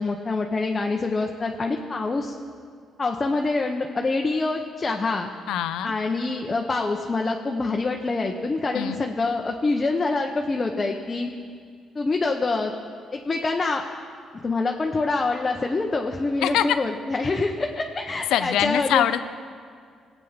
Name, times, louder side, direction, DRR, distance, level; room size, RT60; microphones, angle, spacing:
voice 1, 0.0-2.3 3.0-5.3 5.8-11.3 11.9-12.7 13.1-13.8 14.4-19.1, left 3 dB, 30° left, 1 dB, 0.9 m, -25 dB
voice 2, 5.5-5.9 8.7-9.0 16.4-16.8 18.3-19.2, left 11 dB, 85° left, 12 dB, 0.6 m, -23 dB
19.5 x 8.3 x 5.8 m, 2.1 s
cardioid pair, 90°, 0 cm